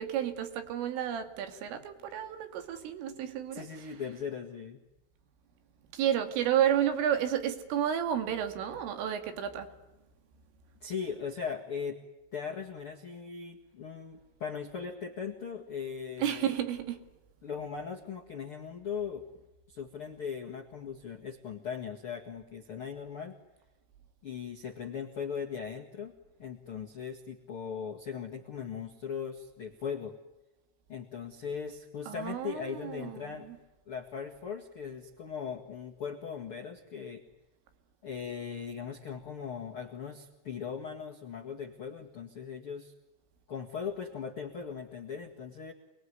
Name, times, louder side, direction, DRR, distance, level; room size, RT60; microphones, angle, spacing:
voice 1, 0.0-3.9 5.9-9.7 16.2-17.0 32.1-33.2, right 10 dB, 90° right, 5.0 m, -31 dB
voice 2, 3.5-4.8 10.8-12.0 12.3-16.5 17.4-19.2 19.7-23.3 24.2-26.1 26.4-30.1 30.9-33.5 33.9-37.2 38.0-42.9 43.5-45.7, left 6 dB, 60° left, 1.4 m, -39 dB
28.5 x 21.5 x 9.7 m
omnidirectional pair, 5.6 m